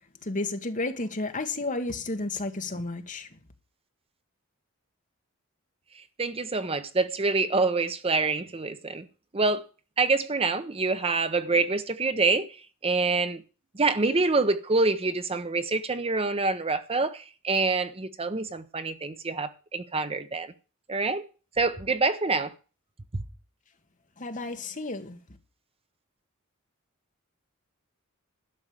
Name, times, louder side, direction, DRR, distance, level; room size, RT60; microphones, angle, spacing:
voice 1, 0.2-3.3 24.2-25.2, left 2 dB, 35° left, 1.6 m, -32 dB
voice 2, 6.2-9.0 9.3-9.6 10.0-12.6 12.8-13.4 13.7-20.5 20.9-21.2 21.6-22.5, right 3 dB, 25° right, 0.8 m, -26 dB
12.0 x 6.4 x 8.9 m
head